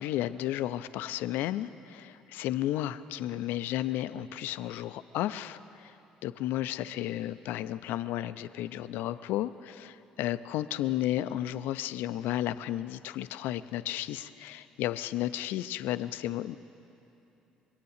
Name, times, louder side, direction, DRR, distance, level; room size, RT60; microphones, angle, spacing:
voice 1, 0.0-5.9 6.2-16.6, left 13 dB, 65° left, 13 dB, 0.5 m, -33 dB
23.0 x 9.2 x 6.6 m, 3.0 s
hypercardioid pair, 55°, 3 cm